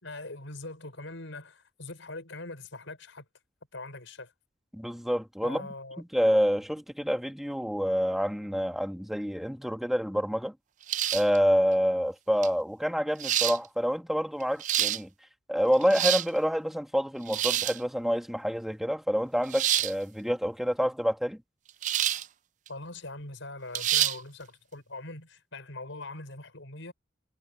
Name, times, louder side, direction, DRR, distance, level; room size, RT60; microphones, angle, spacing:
voice 1, 0.0-3.2 3.7-4.3 5.4-6.0 22.7-26.9, left 2 dB, 70° left, 5.2 m, -42 dB
voice 2, 4.7-5.7 6.0-10.5 11.1-15.1 15.5-21.4, equal, ahead, 1.4 m, -27 dB
sound 1, 10.9-11.4 12.4-12.5 13.2-13.6 14.4-15.0 15.7-16.3 17.3-17.8 19.5-19.9 21.8-22.3 22.7-22.8 23.7-24.2, right 12 dB, 40° right, 0.3 m, -27 dB
head